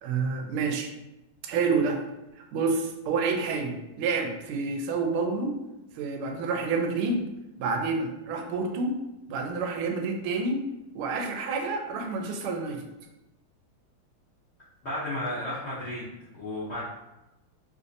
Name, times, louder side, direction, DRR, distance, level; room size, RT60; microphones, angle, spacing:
voice 1, 0.0-0.9 1.4-2.0 2.5-5.6 6.0-7.3 7.6-8.9 9.3-10.6 10.9-12.8, right 4 dB, 85° right, 3 dB, 1.4 m, -28 dB
voice 2, 14.8-16.8, left 1 dB, 65° left, -10 dB, 0.6 m, -33 dB
3.4 x 2.5 x 2.5 m, 0.96 s
omnidirectional pair, 2.3 m